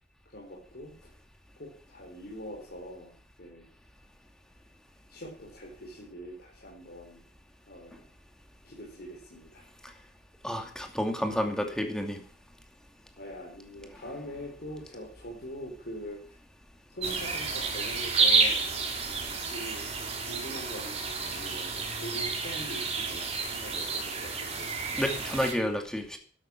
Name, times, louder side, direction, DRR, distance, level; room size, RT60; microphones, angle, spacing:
voice 1, 0.3-1.1 1.6-3.7 5.1-7.2 7.7-8.1 8.6-9.7 13.2-16.4 16.9-18.7 19.3-24.7, equal, 60° left, -3 dB, 4.4 m, -43 dB
voice 2, 10.4-12.2 25.0-26.2, equal, 5° left, 4 dB, 2.4 m, -30 dB
sound 1, 17.0-25.5, right 4 dB, 40° right, 3.6 m, -30 dB
12.0 x 12.0 x 6.1 m, 0.43 s
head